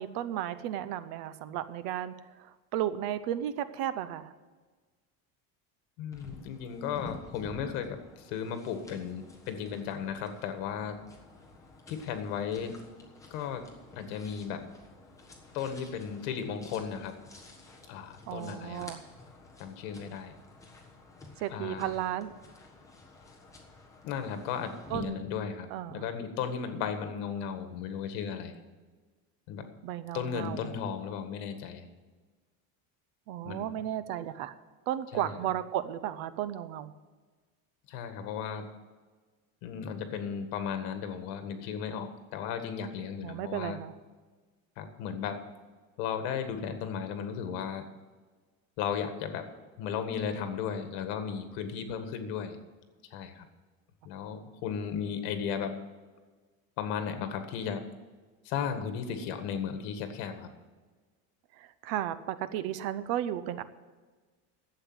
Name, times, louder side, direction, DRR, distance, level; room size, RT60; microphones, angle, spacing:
voice 1, 0.0-4.3 18.3-19.0 21.4-22.3 24.9-25.2 25.7-26.0 29.8-30.8 33.3-34.5 34.9-36.9 43.2-43.9 61.6-63.6, right 11 dB, 60° right, 14 dB, 0.8 m, -34 dB
voice 2, 6.0-11.0 11.9-12.8 13.3-13.7 13.9-14.7 15.5-17.2 17.9-18.9 19.6-20.3 21.5-22.0 24.0-28.6 29.5-29.7 30.1-31.9 33.4-33.8 35.1-35.4 37.9-38.7 39.6-43.8 44.8-45.4 46.0-47.9 48.8-52.6 53.0-53.5 54.0-55.8 56.8-57.9 58.4-60.5, left 7 dB, 70° left, 8 dB, 1.8 m, -35 dB
sound 1, 6.1-25.0, left 3 dB, 5° left, 1.4 m, -51 dB
11.5 x 8.0 x 7.9 m, 1.4 s
cardioid pair, 175°, 42 cm